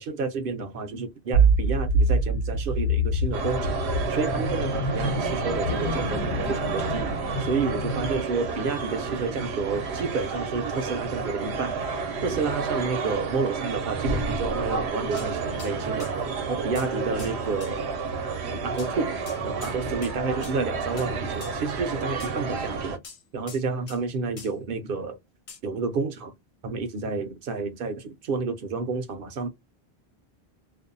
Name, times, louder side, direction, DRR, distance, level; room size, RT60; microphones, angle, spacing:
voice 1, 0.0-3.8 4.1-11.8 12.2-16.1 16.4-17.9 18.5-19.2 19.4-23.0 23.3-25.2 25.6-26.3 26.6-29.5, right 4 dB, 65° right, 0.7 m, -30 dB
sound 1, 1.3-8.2, right 2 dB, 65° left, 0.9 m, -26 dB
sound 2, 3.3-23.0, right 4 dB, 90° right, 0.9 m, -30 dB
sound 3, 15.2-15.3 15.6-15.7 16.0-16.1 16.8-16.9 17.2-17.3 17.6-17.7 18.8-18.9 19.3-19.8 20.0-20.1 20.4-20.6 21.0-21.1 21.4-21.6 22.2-22.4 23.0-24.0 24.4-24.5 25.5-25.6, left 5 dB, 45° left, 0.5 m, -44 dB
2.5 x 2.1 x 2.5 m
omnidirectional pair, 1.1 m